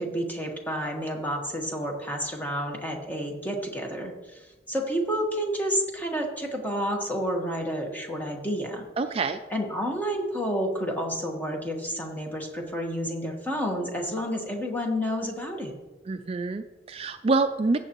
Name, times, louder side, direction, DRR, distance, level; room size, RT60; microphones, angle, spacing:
voice 1, 0.0-4.4 4.7-8.8 9.5-15.7, equal, 10° left, 1 dB, 1.3 m, -30 dB
voice 2, 9.0-9.4 16.1-17.8, right 3 dB, 35° right, 7 dB, 0.4 m, -26 dB
14.5 x 7.5 x 3.0 m, 1.2 s
head